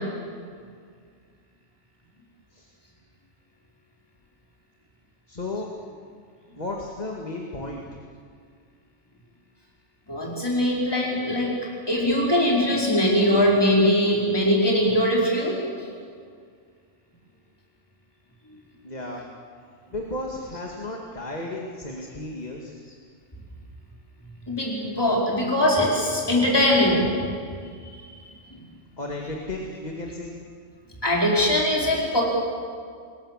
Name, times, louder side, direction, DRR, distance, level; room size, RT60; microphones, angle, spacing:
voice 1, 5.3-6.0 6.6-7.9 18.8-19.2 19.9-22.8 29.0-30.4, left 2 dB, 35° left, 0 dB, 2.3 m, -34 dB
voice 2, 10.1-11.5 11.9-15.6 20.5-20.6 24.5-27.0 28.1-28.3 31.0-32.2, left 1 dB, 20° left, -3 dB, 4.9 m, -21 dB
28.0 x 21.5 x 7.5 m, 2.1 s
omnidirectional pair, 1.3 m